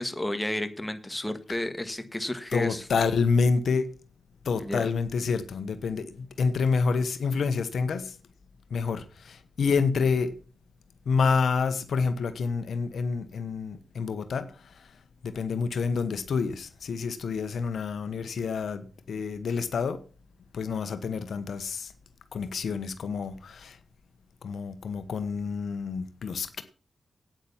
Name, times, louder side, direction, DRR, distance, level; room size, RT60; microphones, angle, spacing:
voice 1, 0.0-2.9 4.6-4.9, left 1 dB, 15° left, 1.6 m, -32 dB
voice 2, 2.5-3.9 4.4-8.2 8.7-10.3 11.1-14.9 15.2-20.0 20.5-21.9 22.3-23.8 24.4-26.6, left 5 dB, 80° left, 1.1 m, -28 dB
9.3 x 8.9 x 7.2 m
cardioid pair, 75°, 0 cm